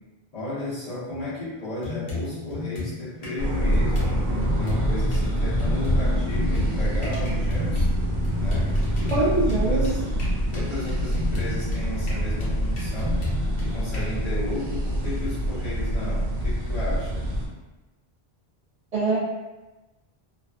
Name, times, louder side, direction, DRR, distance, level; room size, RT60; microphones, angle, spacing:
voice 1, 0.3-7.9 8.4-10.0 10.5-13.2 13.6-17.3, left 2 dB, 40° left, -9 dB, 0.8 m, -34 dB
sound 1, 1.1-1.2 1.8-3.4 3.7-5.2 5.6-14.0, left 3 dB, 65° left, 1.0 m, -33 dB
sound 2, 3.4-17.5, equal, 75° right, 0.8 m, -25 dB
voice 2, 9.1-9.9 18.9-19.2, right 2 dB, 55° right, -7 dB, 0.4 m, -23 dB
2.5 x 2.4 x 2.3 m, 1.1 s
omnidirectional pair, 1.1 m